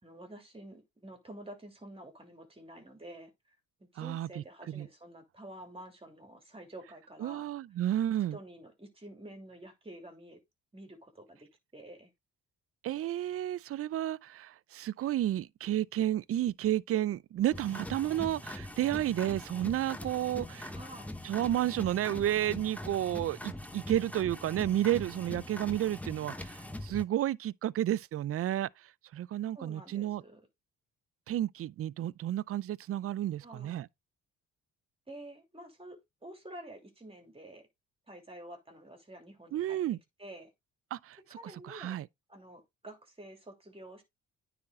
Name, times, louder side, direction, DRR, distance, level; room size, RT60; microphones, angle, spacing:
voice 1, 0.0-3.3 3.9-7.5 8.3-10.4 10.7-12.1 20.7-21.1 29.5-30.4 33.4-33.8 35.1-37.7 38.1-39.8 40.2-40.5 41.3-42.0 42.3-44.0, right 1 dB, 20° right, 2.9 m, -49 dB
voice 2, 4.0-4.9 7.2-8.4 12.8-20.7 21.2-28.7 29.1-30.2 31.3-33.9 39.5-40.0 40.9-41.2 41.6-42.1, right 12 dB, 50° right, 0.4 m, -31 dB
sound 1, 17.5-27.0, left 1 dB, 5° left, 1.0 m, -42 dB
9.6 x 4.3 x 3.8 m
cardioid pair, 90°, 30 cm